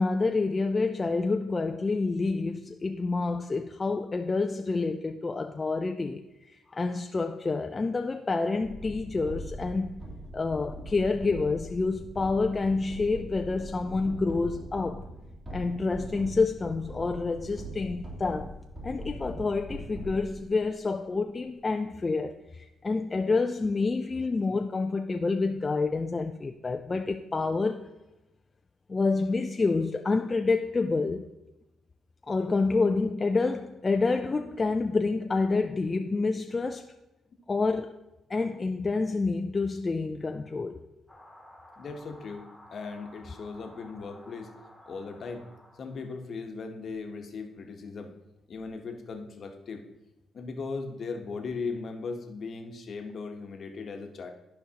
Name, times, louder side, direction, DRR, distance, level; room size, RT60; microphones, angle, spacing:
voice 1, 0.0-6.2 6.5-10.0 10.3-15.0 15.5-18.5 18.8-27.9 28.9-31.3 32.3-36.9 37.5-37.9 38.3-40.8, left 3 dB, 25° left, 5 dB, 0.3 m, -28 dB
sound 1, 8.6-20.7, equal, 35° right, 2.8 m, -41 dB
sound 2, 41.1-46.1, left 1 dB, 5° left, 1.4 m, -53 dB
voice 2, 41.8-42.4 42.7-44.5 44.9-45.4 45.7-48.1 48.5-49.8 50.3-54.3, left 4 dB, 50° left, 4 dB, 1.0 m, -38 dB
12.5 x 5.2 x 2.9 m, 0.97 s
cardioid pair, 105°, 0 cm